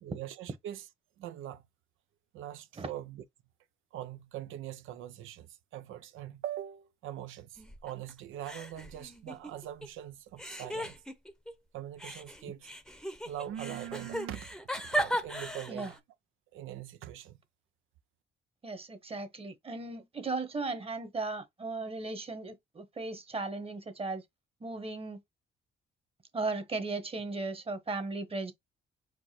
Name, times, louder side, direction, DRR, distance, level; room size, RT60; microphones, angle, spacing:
voice 1, 0.0-0.9 1.2-1.6 2.3-3.2 3.9-11.0 11.7-12.7 13.2-16.0 16.5-17.4, right 11 dB, 85° right, 0.6 m, -42 dB
sound 1, 7.6-8.1 8.4-9.9 10.4-11.5 12.0-16.0, right 1 dB, 5° left, 0.7 m, -37 dB
voice 2, 18.6-24.2 24.6-25.2 26.3-28.5, right 3 dB, 30° right, 1.1 m, -36 dB
4.7 x 2.2 x 4.3 m
cardioid pair, 90°, 20 cm